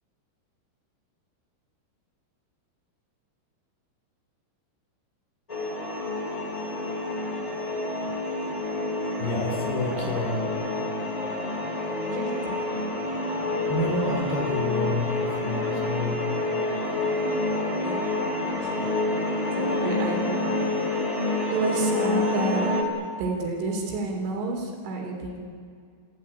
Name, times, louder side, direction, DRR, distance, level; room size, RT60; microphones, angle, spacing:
sound 1, 5.5-22.8, left 2 dB, 10° left, 2.1 m, -28 dB
voice 1, 9.2-10.5 13.7-16.2, left 2 dB, 55° left, 1 dB, 5.5 m, -29 dB
voice 2, 12.1-13.0 17.8-18.0 18.3-18.9 19.5-20.5 21.5-22.8 23.2-25.4, right 2 dB, 70° right, 1 dB, 6.0 m, -30 dB
27.5 x 16.0 x 9.7 m, 2.2 s
omnidirectional pair, 5.9 m